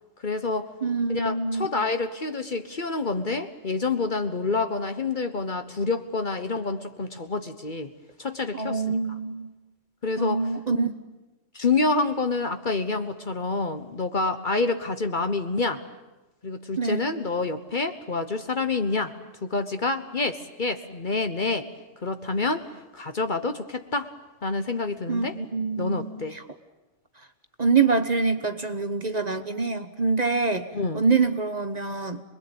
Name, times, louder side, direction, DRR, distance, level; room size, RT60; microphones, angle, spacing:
voice 1, 0.2-0.7 1.1-7.9 8.2-8.8 10.0-10.5 11.5-15.8 16.4-19.1 19.4-21.7 22.0-22.6 22.9-24.1 24.4-25.4 25.8-26.4 30.7-31.0, left 3 dB, 40° left, 9 dB, 1.2 m, -27 dB
voice 2, 0.8-1.9 8.5-9.5 10.2-11.0 16.8-17.1 25.1-26.2 27.6-30.7 30.9-32.2, right 4 dB, 35° right, 9 dB, 1.1 m, -25 dB
26.5 x 21.5 x 8.9 m, 1.1 s
omnidirectional pair, 1.3 m